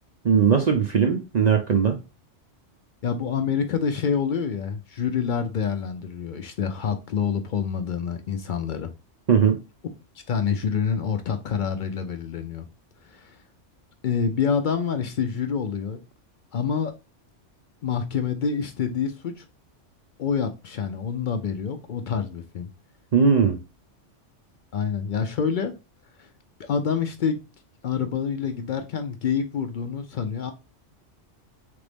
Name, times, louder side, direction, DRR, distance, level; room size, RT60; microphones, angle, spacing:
voice 1, 0.2-2.0 9.3-9.6 23.1-23.6, right 6 dB, 55° right, 0.4 m, -19 dB
voice 2, 3.0-8.9 10.3-12.7 13.1-13.3 14.0-16.0 16.5-16.9 17.8-19.4 20.2-22.7 24.7-25.8 26.2-26.3 26.6-27.4 27.8-30.5, left 6 dB, 60° left, 0.5 m, -27 dB
3.9 x 3.4 x 3.4 m
omnidirectional pair, 1.3 m